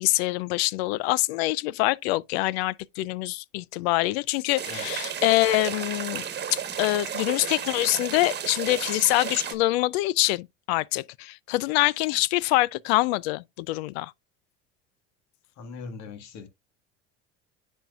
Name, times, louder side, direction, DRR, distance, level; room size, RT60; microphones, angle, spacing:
voice 1, 0.0-6.2 6.5-14.1, left 19 dB, 80° left, 0.5 m, -25 dB
sound 1, 4.6-9.5, right 8 dB, 35° right, 1.3 m, -33 dB
voice 2, 15.6-16.5, left 5 dB, 60° left, 1.7 m, -40 dB
9.9 x 4.5 x 2.4 m
supercardioid pair, 90°, 31 cm